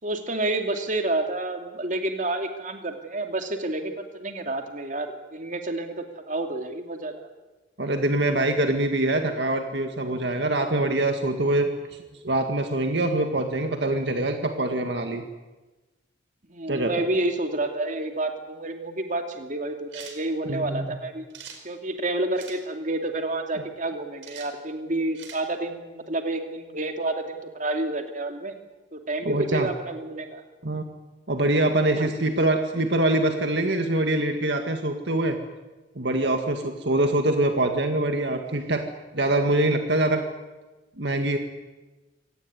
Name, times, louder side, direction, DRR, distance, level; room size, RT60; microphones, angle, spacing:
voice 1, 0.0-7.3 16.5-21.3 21.6-28.5 28.9-30.4 31.9-32.1, right 2 dB, 45° right, 5 dB, 2.6 m, -29 dB
voice 2, 7.8-11.7 12.2-15.2 16.7-17.1 20.5-20.9 29.3-29.7 30.6-30.8 31.3-35.4 36.0-38.8 39.1-40.2 41.0-41.4, right 1 dB, 65° right, 5 dB, 2.0 m, -24 dB
sound 1, 19.9-20.2 21.3-21.6 22.3-22.6 24.2-24.5 25.1-25.4, right 7 dB, 80° right, 4.8 m, -42 dB
26.0 x 18.5 x 9.5 m, 1.2 s
head